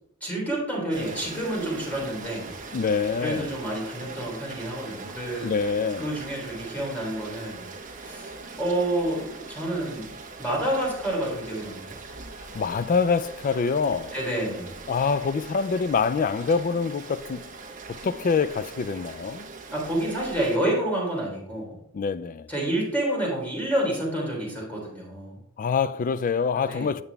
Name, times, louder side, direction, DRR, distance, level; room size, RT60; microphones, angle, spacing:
voice 1, 0.2-2.5 3.2-5.5 6.0-7.7 8.0-8.3 8.6-10.1 10.4-11.9 14.1-14.7 19.7-21.8 22.5-25.4 26.5-26.9, right 1 dB, 10° left, 3.3 m, -29 dB
Rain, 0.9-20.6, right 3 dB, 40° right, 1.2 m, -41 dB
voice 2, 2.7-3.5 5.4-6.1 12.5-14.1 14.9-17.4 17.9-19.5 21.9-22.5 25.6-27.0, left 5 dB, 40° left, 0.4 m, -25 dB
8.8 x 6.9 x 3.4 m
head